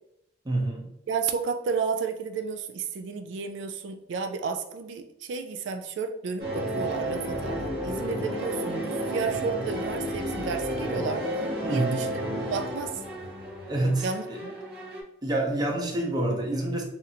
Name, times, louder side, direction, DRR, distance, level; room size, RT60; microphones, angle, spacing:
voice 1, 0.4-0.9 11.6-12.1 13.7-14.4 15.2-16.8, right 1 dB, 20° right, 0 dB, 0.6 m, -27 dB
voice 2, 1.1-11.3 11.7-13.0 14.0-14.5, right 5 dB, 85° right, 6 dB, 0.3 m, -32 dB
sound 1, 6.4-15.0, right 1 dB, 60° right, 1.0 m, -32 dB
2.8 x 2.5 x 4.1 m, 0.83 s
head